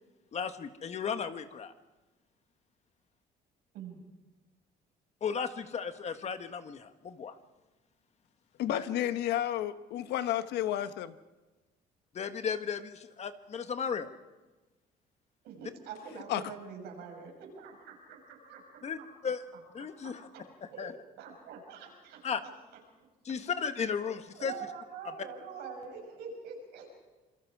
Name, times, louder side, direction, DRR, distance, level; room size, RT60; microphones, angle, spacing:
voice 1, 0.3-1.7 5.2-7.4 8.7-8.8 12.1-14.1 18.8-19.0 19.2-19.4 19.7-20.2 20.8-20.9 22.2-22.4 23.2-24.5, left 6 dB, 40° left, 9 dB, 1.5 m, -35 dB
voice 2, 8.6-11.1 16.3-16.4, left 12 dB, 80° left, 11 dB, 1.2 m, -31 dB
voice 3, 15.4-19.1 20.0-20.4 20.7-20.9 21.2-22.2 24.0-27.0, right 6 dB, 90° right, 1 dB, 6.7 m, -45 dB
27.0 x 23.0 x 4.9 m, 1.2 s
cardioid pair, 110°, 17 cm